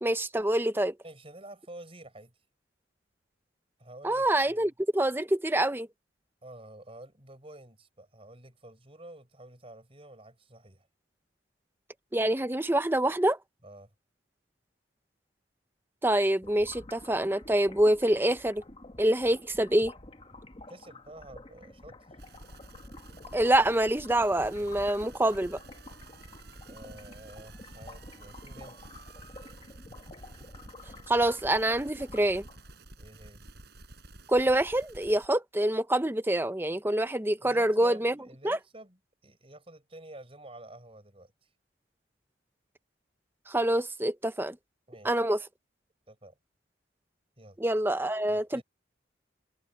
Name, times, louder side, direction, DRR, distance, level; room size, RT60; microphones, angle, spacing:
voice 1, 0.0-0.9 4.0-5.9 12.1-13.4 16.0-18.6 19.0-19.9 23.3-25.6 31.1-32.5 34.3-38.2 38.4-38.6 43.5-44.6 45.0-45.4 47.6-48.6, right 1 dB, 10° right, 0.7 m, -26 dB
voice 2, 1.0-2.3 3.8-4.7 6.4-10.9 13.6-13.9 20.7-22.1 26.7-28.9 33.0-33.6 37.4-41.3 44.9-45.2 46.1-46.4 47.4-47.6 48.3-48.6, right 1 dB, 30° right, 5.9 m, -49 dB
sound 1, 16.4-32.8, left 2 dB, 30° left, 1.5 m, -50 dB
sound 2, 22.2-35.3, right 2 dB, 55° right, 5.2 m, -51 dB
head